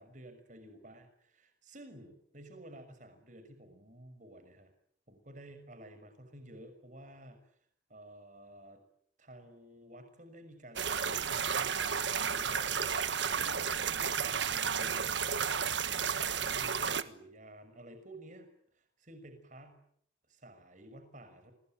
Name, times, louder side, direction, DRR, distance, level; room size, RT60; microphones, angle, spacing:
voice 1, 0.0-4.7 5.1-7.6 7.9-8.8 9.2-16.0 16.3-18.5 18.7-19.8 20.3-21.5, right 1 dB, 40° right, 9 dB, 6.0 m, -53 dB
sound 1, 10.8-17.0, right 7 dB, 70° right, 1.5 m, -32 dB
27.5 x 22.0 x 9.2 m, 0.67 s
head